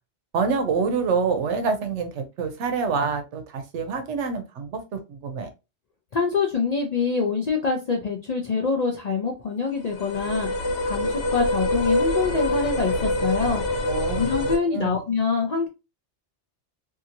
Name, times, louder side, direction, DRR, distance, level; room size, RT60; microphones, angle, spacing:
voice 1, 0.3-4.8 5.1-5.5 13.9-15.0, right 5 dB, 75° right, 8 dB, 0.9 m, -26 dB
voice 2, 6.1-10.5 10.8-13.6 14.2-15.7, left 5 dB, 55° left, 2 dB, 0.4 m, -25 dB
sound 1, 9.8-14.6, left 1 dB, 75° left, 1.0 m, -25 dB
2.8 x 2.7 x 2.5 m, 0.27 s
omnidirectional pair, 1.2 m